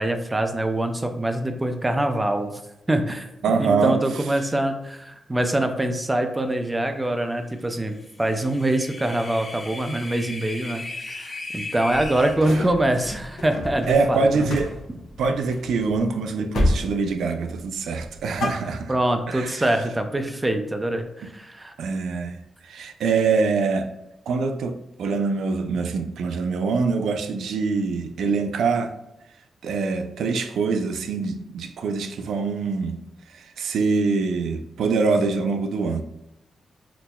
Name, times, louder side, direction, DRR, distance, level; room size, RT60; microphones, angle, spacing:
voice 1, 0.0-2.5 2.9-3.3 3.6-14.5 18.9-21.7, right 1 dB, 15° right, 0.4 m, -24 dB
voice 2, 3.4-4.0 13.9-14.7 15.2-18.9 19.3-19.6 21.8-23.9 24.3-28.9 29.6-33.0 33.3-36.0, right 4 dB, 90° right, 0.3 m, -24 dB
sound 1, 8.1-12.4, left 2 dB, 35° left, 0.7 m, -36 dB
sound 2, 11.9-16.1 16.5-16.9 17.2-17.6 18.0-19.2, left 1 dB, 85° left, 0.6 m, -30 dB
5.7 x 2.1 x 2.2 m
cardioid pair, 115°, 0 cm